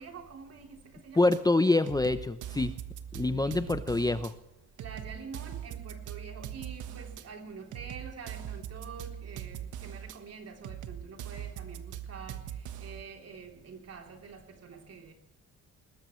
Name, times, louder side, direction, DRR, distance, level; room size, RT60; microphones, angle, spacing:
voice 1, 0.0-1.3 3.2-3.7 4.8-12.4 12.8-15.1, right 5 dB, 55° right, 3.5 m, -46 dB
voice 2, 1.2-2.7 3.1-4.3, left 2 dB, 10° left, 0.8 m, -26 dB
sound 1, 1.3-1.4 1.9-4.3 4.8-7.2 7.7-10.2 10.6-13.0, right 10 dB, 80° right, 1.4 m, -41 dB
21.5 x 19.0 x 3.2 m
cardioid pair, 90°, 30 cm